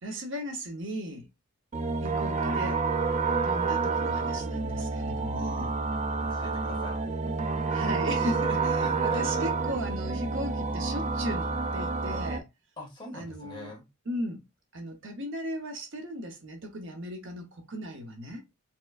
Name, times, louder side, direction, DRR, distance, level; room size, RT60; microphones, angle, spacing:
voice 1, 0.0-1.3 2.0-2.8 3.4-5.7 7.7-12.5 13.1-13.8 14.1-14.4 14.7-18.4, equal, 55° right, 0.9 m, -36 dB
sound 1, 1.7-12.4, right 4 dB, 30° right, 0.4 m, -29 dB
voice 2, 6.2-7.1 8.8-9.5 12.8-13.8, left 1 dB, 20° left, 1.8 m, -43 dB
4.3 x 3.6 x 2.4 m
head